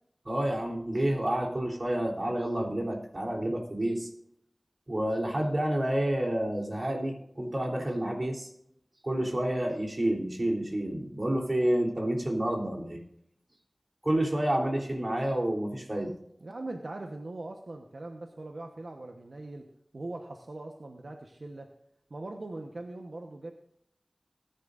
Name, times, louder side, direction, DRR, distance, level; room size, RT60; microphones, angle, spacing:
voice 1, 0.2-4.1 4.9-8.5 9.0-13.0 14.0-16.1, right 1 dB, 50° right, 0 dB, 3.3 m, -29 dB
voice 2, 16.4-21.7 22.1-23.5, right 2 dB, 80° right, 3 dB, 1.0 m, -41 dB
18.5 x 10.5 x 2.5 m, 0.72 s
wide cardioid pair, 60°, 0 cm